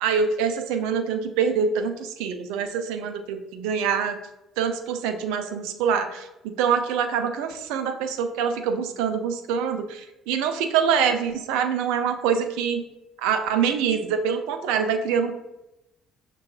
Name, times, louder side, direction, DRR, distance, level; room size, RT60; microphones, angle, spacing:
voice 1, 0.0-4.2 4.6-12.8 13.2-15.3, right 7 dB, 65° right, 7 dB, 0.3 m, -25 dB
6.1 x 2.3 x 2.4 m, 0.94 s
figure-of-eight pair, 50°, 0 cm